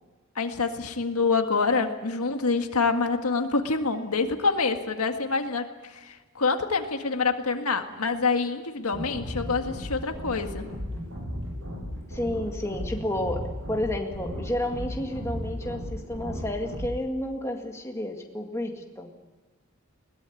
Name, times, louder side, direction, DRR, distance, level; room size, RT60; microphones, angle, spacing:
voice 1, 0.4-10.7, left 4 dB, 85° left, 6 dB, 1.8 m, -26 dB
sound 1, 8.9-16.9, equal, 65° right, 7.8 m, -35 dB
voice 2, 12.1-13.4 13.7-19.1, left 1 dB, 15° left, 2 dB, 2.0 m, -31 dB
21.0 x 18.0 x 9.7 m, 1.2 s
head